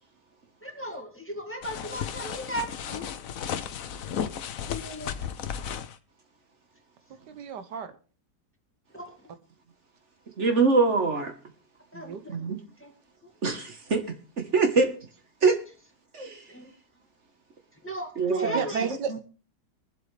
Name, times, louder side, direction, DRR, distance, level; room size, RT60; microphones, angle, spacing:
voice 1, 0.6-3.0 4.7-5.1 8.9-9.1 11.9-12.3 12.8-12.9 16.5-16.7 17.8-18.1 18.4-18.8, equal, 5° left, 2.0 m, -36 dB
sound 1, 1.6-6.0, left 8 dB, 60° left, 1.1 m, -34 dB
voice 2, 7.1-7.9 11.9-12.2 18.3-19.2, right 7 dB, 85° right, 1.6 m, -33 dB
voice 3, 10.4-11.3 12.3-12.6 13.4-14.0 14.5-14.9 15.4-15.5 16.1-16.4 18.2-18.7, right 4 dB, 45° right, 1.5 m, -23 dB
23.0 x 7.8 x 3.3 m
omnidirectional pair, 1.8 m